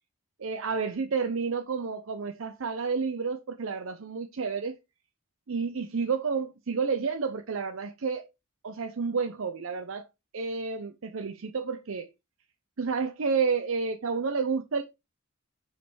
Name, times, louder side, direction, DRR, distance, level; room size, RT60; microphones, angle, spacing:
voice 1, 0.4-4.8 5.5-8.3 8.6-10.0 10.3-12.1 12.8-14.8, right 5 dB, 70° right, 0.6 m, -30 dB
5.2 x 5.1 x 4.6 m
head